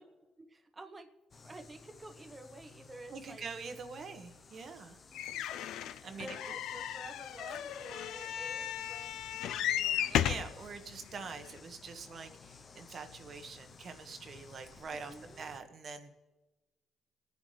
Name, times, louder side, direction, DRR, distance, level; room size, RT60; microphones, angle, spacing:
voice 1, 0.4-1.1 1.4-3.4 5.1-5.3 5.8-5.9 6.2-10.5 11.2-11.4 14.9-15.5, right 2 dB, 25° right, 7 dB, 1.2 m, -51 dB
sound 1, 1.3-15.6, left 5 dB, 40° left, 0.9 m, -56 dB
voice 2, 3.1-5.0 6.0-6.3 10.1-16.2, right 5 dB, 55° right, 7 dB, 1.4 m, -45 dB
sound 2, 5.1-10.5 11.2-11.3 11.6-11.7, left 11 dB, 85° left, 0.4 m, -35 dB
24.5 x 9.7 x 3.4 m, 1.2 s
cardioid pair, 90°, 0 cm